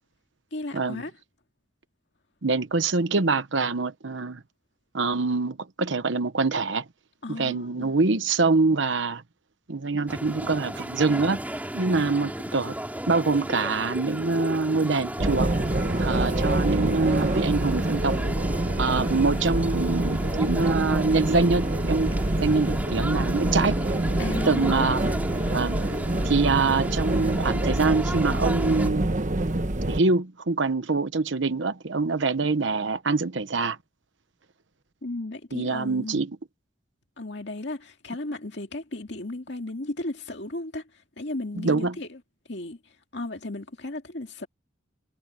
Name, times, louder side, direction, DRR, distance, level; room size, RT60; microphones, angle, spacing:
voice 1, 0.5-1.1 7.2-7.9 24.2-24.9 35.0-36.3 37.2-40.8 41.2-42.2 42.5-42.8 43.1-44.5, left 2 dB, 60° left, 2.3 m, -35 dB
voice 2, 2.4-4.4 4.9-6.8 7.3-9.2 9.7-11.4 11.7-12.8 13.1-15.5 16.0-18.2 18.8-22.1 22.4-23.8 24.5-25.0 25.5-25.8 26.2-29.1 29.9-33.8 35.5-36.3 41.5-42.0, right 3 dB, 70° right, 1.0 m, -24 dB
sound 1, 10.1-28.9, right 1 dB, 10° right, 4.4 m, -34 dB
sound 2, 15.2-30.0, right 1 dB, 40° right, 1.1 m, -26 dB
head